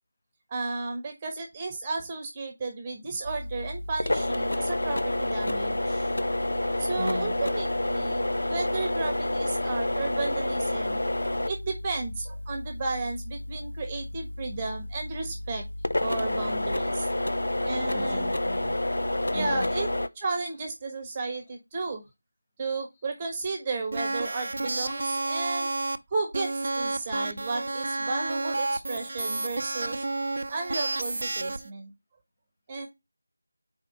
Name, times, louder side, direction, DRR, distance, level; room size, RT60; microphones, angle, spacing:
voice 1, 0.5-6.1 6.8-11.0 11.5-15.6 16.0-17.2 17.6-18.3 19.3-19.9 20.2-22.0 22.6-25.7 26.1-30.1 30.5-31.9 32.7-32.9, right 3 dB, 20° right, 1.1 m, -33 dB
sound 1, 3.3-20.1, left 1 dB, 80° left, 0.6 m, -29 dB
voice 2, 6.9-7.4 17.9-18.8 19.3-19.7 25.6-25.7, left 1 dB, 25° left, 1.1 m, -37 dB
sound 2, 23.9-26.0 26.3-31.7, right 2 dB, 55° right, 0.6 m, -30 dB
4.3 x 4.2 x 5.4 m
figure-of-eight pair, 170°, 0 cm